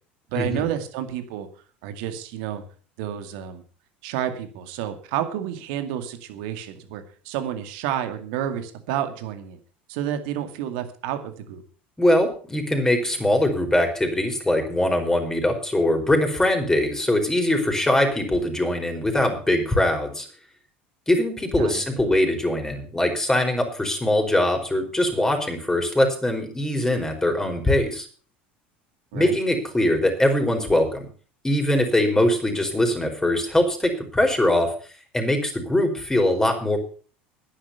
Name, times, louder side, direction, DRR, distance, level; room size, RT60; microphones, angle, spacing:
voice 1, 0.3-1.5 1.8-2.6 3.0-3.6 4.0-9.6 9.9-11.6 21.6-21.8 29.1-29.4, right 10 dB, 65° right, 8 dB, 2.2 m, -30 dB
voice 2, 12.0-20.3 21.1-28.1 29.1-31.1 31.4-34.7 35.1-36.8, left 1 dB, 10° left, 3 dB, 4.8 m, -22 dB
10.5 x 10.5 x 6.9 m, 0.41 s
hypercardioid pair, 75°, 5 cm